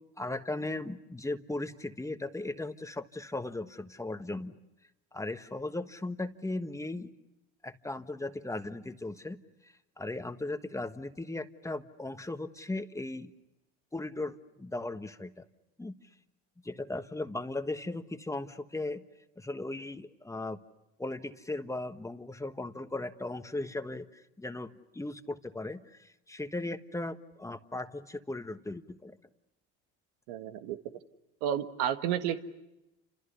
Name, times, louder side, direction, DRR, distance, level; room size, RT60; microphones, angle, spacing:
voice 1, 0.2-4.6 5.1-7.1 7.6-9.4 9.6-13.3 13.9-15.4 15.8-15.9 16.6-19.0 19.4-20.6 21.0-29.2, left 2 dB, 10° left, 8 dB, 1.4 m, -37 dB
voice 2, 30.3-30.8 31.4-32.4, right 10 dB, 85° right, 8 dB, 1.6 m, -31 dB
29.5 x 27.0 x 6.9 m, 0.94 s
supercardioid pair, 90°, 29 cm